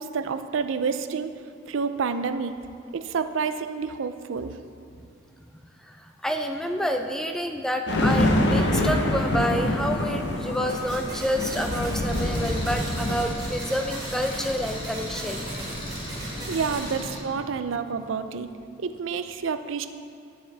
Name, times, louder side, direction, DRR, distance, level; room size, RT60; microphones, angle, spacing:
voice 1, 0.0-1.3 1.7-2.5 2.9-4.6 16.5-18.5 18.8-19.9, right 5 dB, 65° right, 10 dB, 0.4 m, -29 dB
voice 2, 5.9-15.4, equal, 5° left, 4 dB, 0.4 m, -28 dB
sound 1, 7.9-13.3, left 1 dB, 55° left, 0.9 m, -25 dB
sound 2, 10.7-17.0, right 1 dB, 20° right, 1.7 m, -38 dB
Engine, 12.0-17.2, equal, 25° left, 1.4 m, -36 dB
11.0 x 7.2 x 3.4 m, 2.5 s
head